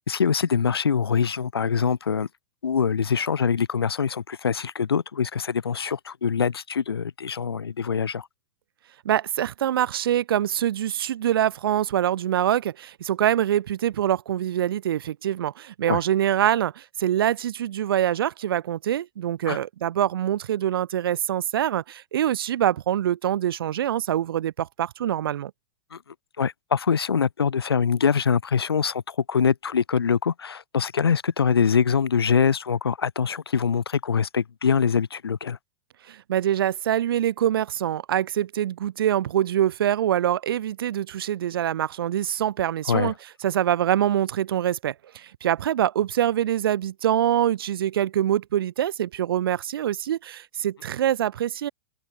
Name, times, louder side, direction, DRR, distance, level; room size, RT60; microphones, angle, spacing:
voice 1, 0.1-2.3 2.6-8.3 15.9-16.0 19.5-19.6 25.9-26.0 26.4-35.6 42.9-43.1, left 6 dB, 85° left, 2.0 m, -24 dB
voice 2, 9.0-25.5 36.1-43.1 43.4-51.7, right 11 dB, 70° right, 1.0 m, -24 dB
open air
hypercardioid pair, 110°, 13 cm